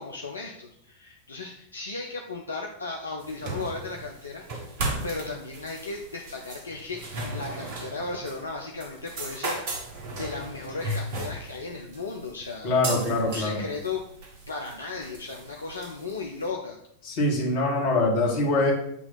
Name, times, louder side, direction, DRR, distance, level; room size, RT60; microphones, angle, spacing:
voice 1, 0.0-14.0 14.5-16.8, left 3 dB, 75° left, 1 dB, 0.6 m, -36 dB
sound 1, 3.2-16.5, right 2 dB, 50° right, 1.2 m, -36 dB
voice 2, 12.6-13.6 17.1-18.7, left 2 dB, 45° left, -2 dB, 1.8 m, -24 dB
8.3 x 2.9 x 4.1 m, 0.75 s
figure-of-eight pair, 90°, 0 cm